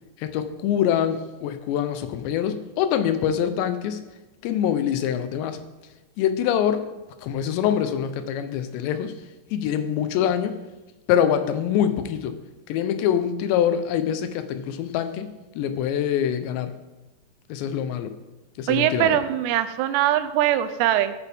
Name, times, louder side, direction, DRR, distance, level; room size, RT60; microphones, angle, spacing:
voice 1, 0.2-4.0 4.4-5.6 6.2-6.9 7.2-9.2 9.5-10.6 11.1-12.4 12.7-15.3 15.6-16.7 17.5-18.1 18.6-19.2, left 9 dB, 90° left, 10 dB, 3.0 m, -24 dB
voice 2, 18.7-21.1, right 12 dB, 85° right, 11 dB, 2.7 m, -22 dB
14.0 x 9.2 x 3.5 m, 1.1 s
omnidirectional pair, 4.9 m